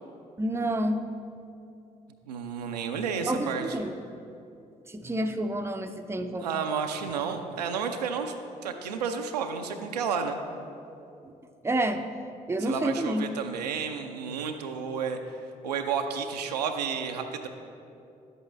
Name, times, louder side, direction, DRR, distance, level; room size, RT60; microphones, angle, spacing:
voice 1, 0.4-1.1 3.2-3.9 4.9-6.5 11.6-12.0 12.5-13.2, right 1 dB, 10° right, 7 dB, 0.5 m, -29 dB
voice 2, 2.3-3.8 6.4-8.3 8.6-10.4 12.6-15.2 15.6-17.5, right 6 dB, 80° right, 5 dB, 0.4 m, -31 dB
10.5 x 8.0 x 3.2 m, 2.7 s
figure-of-eight pair, 40°, 20 cm